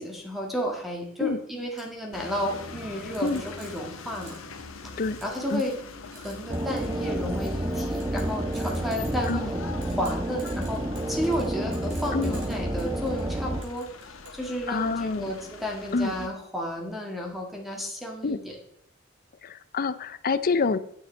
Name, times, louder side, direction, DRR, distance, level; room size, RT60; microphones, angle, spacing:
voice 1, 0.0-4.3 5.2-5.8 6.1-10.8 11.1-13.9 14.3-18.6, equal, ahead, 0 dB, 1.8 m, -32 dB
sound 1, 1.8-1.9 3.1-4.5 5.2-5.8 6.1-7.0 7.4-7.6 8.0-9.5 9.8-13.2 13.6-14.4, right 3 dB, 65° right, 3.9 m, -49 dB
sound 2, 2.1-16.3, left 4 dB, 80° left, 1.1 m, -43 dB
sound 3, 6.5-13.6, right 1 dB, 20° right, 0.7 m, -30 dB
voice 2, 14.7-15.3 15.9-16.1 18.2-18.4 19.4-20.8, left 4 dB, 45° left, 14 dB, 0.5 m, -26 dB
10.0 x 6.7 x 4.5 m, 0.71 s
head